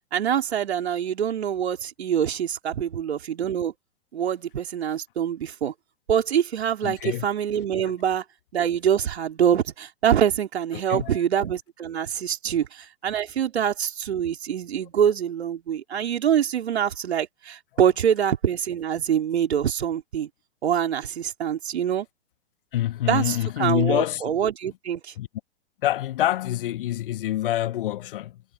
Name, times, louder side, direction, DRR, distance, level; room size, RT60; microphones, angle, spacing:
voice 1, 0.1-3.7 4.1-5.7 6.1-8.2 8.5-20.3 20.6-22.1 23.1-25.1, right 9 dB, 60° right, 3.6 m, -25 dB
voice 2, 6.8-7.3 7.8-7.9 10.7-11.2 12.4-12.5 22.7-24.2 25.2-25.3 25.8-28.4, left 13 dB, 45° left, 1.3 m, -26 dB
figure-of-eight pair, 115°, 37 cm